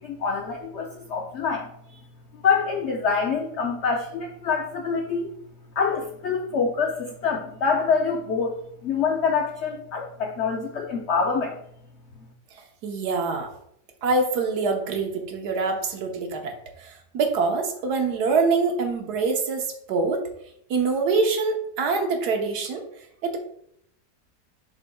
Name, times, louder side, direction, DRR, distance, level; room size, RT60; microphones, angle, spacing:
voice 1, 0.0-2.0 2.4-5.3 5.8-8.6 8.8-11.6, left 5 dB, 55° left, 1 dB, 0.8 m, -26 dB
voice 2, 12.8-13.5 14.0-16.5 16.8-20.2 20.7-22.8 23.2-23.4, right 4 dB, 75° right, 3 dB, 1.5 m, -25 dB
11.0 x 4.1 x 2.3 m, 0.72 s
omnidirectional pair, 1.7 m